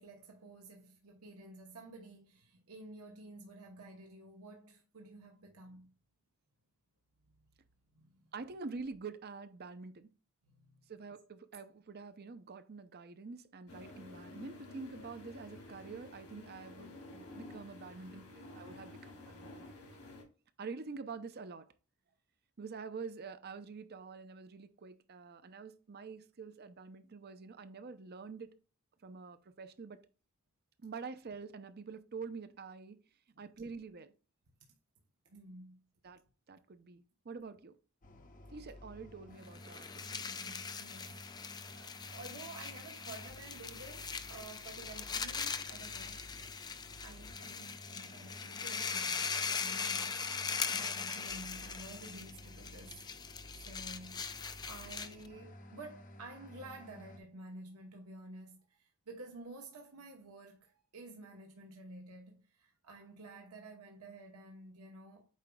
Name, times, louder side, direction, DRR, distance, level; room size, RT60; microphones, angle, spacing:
voice 1, 0.0-5.9 7.9-8.2 10.4-10.7 33.3-33.4 35.2-35.8 40.0-41.5 41.8-46.3 47.0-49.2 49.6-53.0 53.5-54.4 54.7-65.3, right 2 dB, 80° right, 1.0 m, -51 dB
voice 2, 8.3-10.1 10.9-19.5 20.6-21.7 22.6-28.6 29.0-30.0 30.8-33.0 33.4-34.1 36.0-36.2 36.5-37.8 38.5-40.1, right 4 dB, 45° right, 0.6 m, -47 dB
sound 1, 13.7-20.2, left 2 dB, 85° left, 3.1 m, -51 dB
sound 2, 38.0-57.2, left 1 dB, 35° left, 0.8 m, -54 dB
sound 3, 39.5-55.3, left 5 dB, 20° left, 0.4 m, -40 dB
8.3 x 5.0 x 2.3 m
head